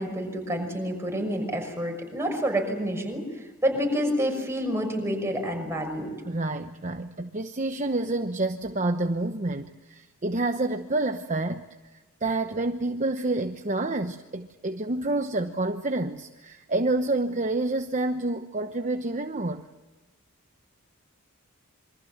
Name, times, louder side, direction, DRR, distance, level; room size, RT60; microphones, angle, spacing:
voice 1, 0.0-6.1, equal, 10° right, 3 dB, 6.1 m, -28 dB
voice 2, 6.2-11.6 12.2-19.6, right 2 dB, 35° right, 7 dB, 1.0 m, -28 dB
27.5 x 24.5 x 7.3 m, 1.2 s
head